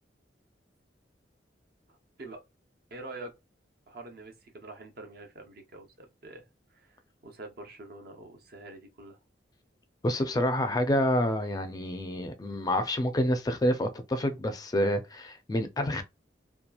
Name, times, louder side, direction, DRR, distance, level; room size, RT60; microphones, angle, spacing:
voice 1, 1.9-2.4 2.9-3.3 3.9-6.4 6.7-9.2, right 2 dB, 55° right, 0.7 m, -46 dB
voice 2, 10.0-16.0, left 1 dB, 20° left, 0.3 m, -28 dB
2.9 x 2.3 x 2.2 m
head